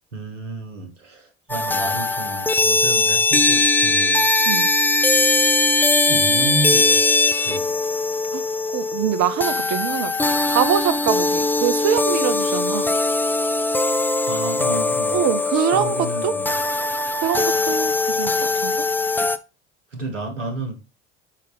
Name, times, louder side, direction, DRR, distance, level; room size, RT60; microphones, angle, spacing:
voice 1, 0.1-4.8 6.1-7.0 7.4-7.8 14.3-16.6 17.5-17.7 19.0-19.1 19.9-20.8, right 2 dB, 90° right, 1.2 m, -32 dB
sound 1, 1.5-19.4, left 2 dB, 5° left, 0.3 m, -20 dB
voice 2, 8.7-12.9 15.1-16.3 17.2-18.8, right 10 dB, 50° right, 0.7 m, -24 dB
5.6 x 5.2 x 3.4 m
figure-of-eight pair, 60°, 36 cm